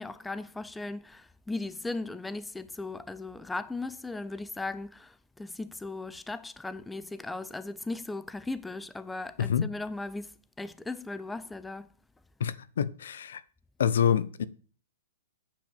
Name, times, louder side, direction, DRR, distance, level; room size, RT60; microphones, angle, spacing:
voice 1, 0.0-11.9, left 2 dB, 5° left, 0.4 m, -37 dB
voice 2, 12.4-13.4 13.8-14.4, left 8 dB, 75° left, 0.7 m, -26 dB
8.8 x 5.2 x 7.0 m
hypercardioid pair, 125°, 0 cm